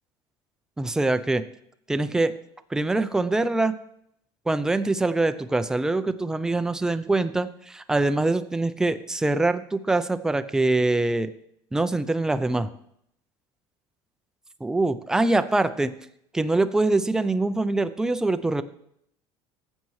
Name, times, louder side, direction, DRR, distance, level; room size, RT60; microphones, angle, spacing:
voice 1, 0.8-1.4 1.9-2.3 2.7-3.7 4.5-11.3 11.7-12.7 14.6-15.9 16.3-18.6, right 2 dB, 5° right, 11 dB, 0.4 m, -24 dB
15.0 x 7.4 x 3.1 m, 0.75 s
cardioid pair, 145°, 11 cm